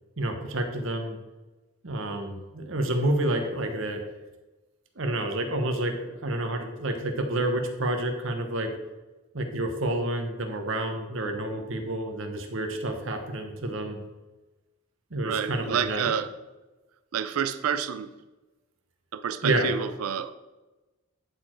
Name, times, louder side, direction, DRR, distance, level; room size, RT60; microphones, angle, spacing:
voice 1, 0.2-1.2 1.8-4.0 5.0-8.7 9.3-14.0 15.1-16.1 19.4-19.7, right 1 dB, 65° right, 5 dB, 1.1 m, -29 dB
voice 2, 15.2-16.3 17.1-18.1 19.1-20.3, right 8 dB, 85° right, 11 dB, 0.4 m, -29 dB
9.5 x 4.4 x 4.5 m, 1.1 s
head